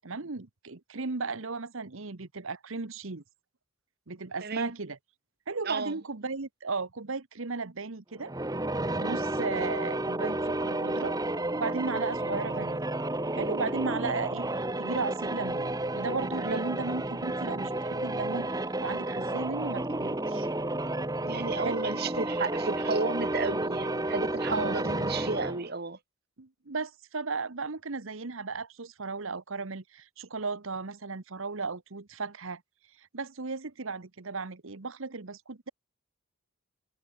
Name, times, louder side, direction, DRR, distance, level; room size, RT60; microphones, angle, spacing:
voice 1, 0.0-3.2 4.1-5.0 5.5-8.3 9.0-11.2 11.6-12.8 13.3-20.5 21.6-21.8 24.5-24.8 26.4-32.6 33.1-35.7, right 4 dB, 65° right, 1.1 m, -35 dB
voice 2, 4.4-4.7 5.6-6.0 16.4-16.6 21.2-26.0, right 3 dB, 45° right, 1.3 m, -33 dB
sound 1, 8.2-25.7, right 1 dB, 15° right, 1.2 m, -31 dB
head